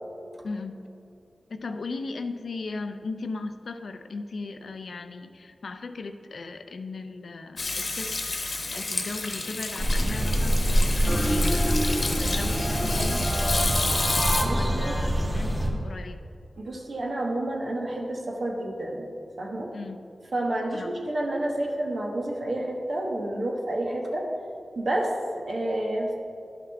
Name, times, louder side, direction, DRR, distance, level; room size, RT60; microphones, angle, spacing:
voice 1, 0.4-0.9 1.5-8.1 8.4-13.3 14.4-16.2 19.7-20.0 20.7-20.9, left 3 dB, 85° left, 8 dB, 0.5 m, -37 dB
Hands / Sink (filling or washing), 7.6-14.4, left 3 dB, 55° left, 1.0 m, -30 dB
sound 1, 9.8-15.7, equal, 40° right, 1.8 m, -25 dB
sound 2, 11.1-15.7, equal, 10° right, 0.4 m, -31 dB
voice 2, 14.4-15.0 16.6-19.1 19.4-19.7 20.3-24.3 24.8-25.1 25.5-26.1, right 1 dB, 70° right, -1 dB, 1.3 m, -29 dB
12.0 x 5.8 x 3.5 m, 2.6 s
wide cardioid pair, 80°, 0 cm